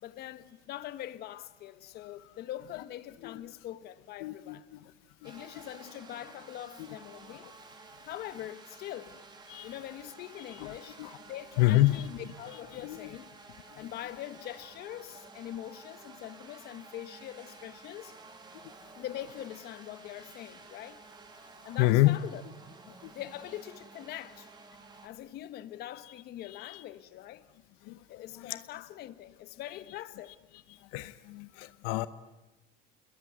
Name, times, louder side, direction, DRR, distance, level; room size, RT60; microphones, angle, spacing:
voice 1, 0.0-4.7 5.2-9.2 9.6-11.0 11.3-13.3 13.8-18.1 18.9-21.0 21.6-22.4 23.1-24.5 25.0-27.5 28.1-30.3, left 13 dB, 50° left, 1.3 m, -43 dB
voice 2, 4.2-4.9 5.2-5.3 6.8-6.9 7.4-7.5 9.5-9.7 10.6-11.2 11.6-12.0 12.8-13.1 13.7-13.9 21.8-22.2 23.0-23.1 26.4-26.8 27.8-28.0 28.4-28.5 30.8-32.1, left 17 dB, 85° left, 0.9 m, -28 dB
sound 1, 5.2-25.1, right 4 dB, 20° right, 2.9 m, -52 dB
28.5 x 21.5 x 9.3 m
cardioid pair, 155°, 21 cm